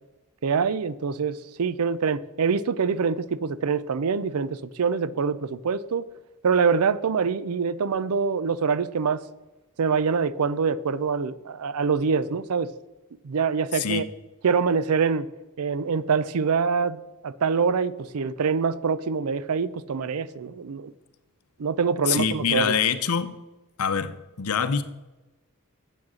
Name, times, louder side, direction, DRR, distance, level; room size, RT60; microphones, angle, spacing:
voice 1, 0.4-6.0 6.4-9.2 9.8-12.7 13.2-14.1 14.4-15.3 15.6-17.0 17.2-20.9 21.6-22.7, right 5 dB, 80° right, 17 dB, 0.5 m, -25 dB
voice 2, 13.7-14.0 22.1-23.4 23.8-24.8, left 7 dB, 80° left, 12 dB, 0.7 m, -25 dB
7.8 x 7.3 x 6.2 m, 1.1 s
head